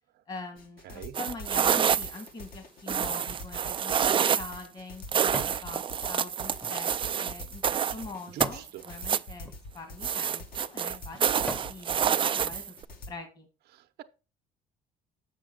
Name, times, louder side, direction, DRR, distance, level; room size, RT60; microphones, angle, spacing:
voice 1, 0.3-6.9 7.2-12.6 13.1-13.5, left 3 dB, 40° left, 1.9 m, -43 dB
sound 1, 0.6-13.1, left 2 dB, 60° left, 1.7 m, -45 dB
voice 2, 0.8-1.2 8.3-8.9 13.7-14.0, right 12 dB, 70° right, 0.7 m, -44 dB
sound 2, 1.1-2.3 2.9-4.6 5.1-8.0 8.4-9.3 10.0-12.8, right 8 dB, 30° right, 0.4 m, -27 dB
sound 3, 4.9-5.7 6.1-8.7 9.3-9.6 10.3-10.4 10.9-11.8 12.3-12.4, equal, 5° left, 0.9 m, -41 dB
7.3 x 6.4 x 3.8 m
cardioid pair, 110°, 17 cm